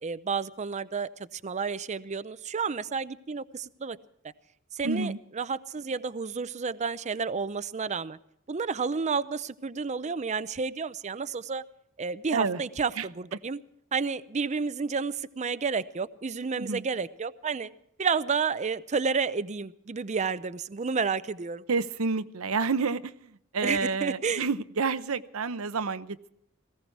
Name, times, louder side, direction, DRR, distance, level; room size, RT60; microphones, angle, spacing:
voice 1, 0.0-4.0 4.7-8.2 8.5-11.6 12.0-13.6 13.9-17.7 18.0-21.6 23.6-24.4, right 5 dB, 35° right, 14 dB, 0.6 m, -31 dB
voice 2, 4.8-5.2 12.3-12.6 13.0-13.1 16.6-16.9 21.7-26.3, right 4 dB, 90° right, 13 dB, 0.8 m, -29 dB
18.5 x 16.0 x 4.6 m, 0.73 s
head